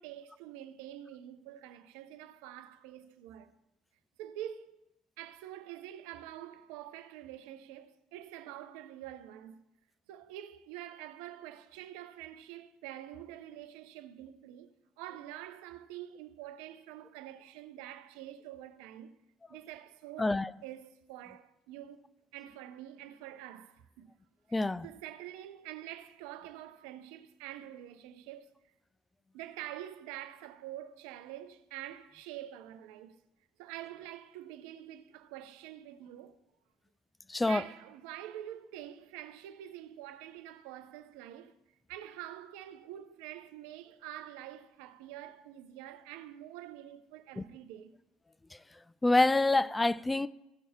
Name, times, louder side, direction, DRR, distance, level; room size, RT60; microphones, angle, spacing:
voice 1, 0.0-3.5 4.2-4.8 5.2-9.6 10.1-14.7 15.0-19.1 19.5-20.3 20.6-22.0 22.3-24.1 24.5-28.5 29.3-33.2 33.6-36.4 37.4-41.5 41.9-47.9, right 12 dB, 70° right, 0.6 m, -46 dB
voice 2, 20.2-20.5 24.5-24.9 37.3-37.6 47.4-47.5 49.0-50.3, left 2 dB, 15° left, 0.3 m, -26 dB
16.0 x 5.4 x 4.5 m
figure-of-eight pair, 55°, 0 cm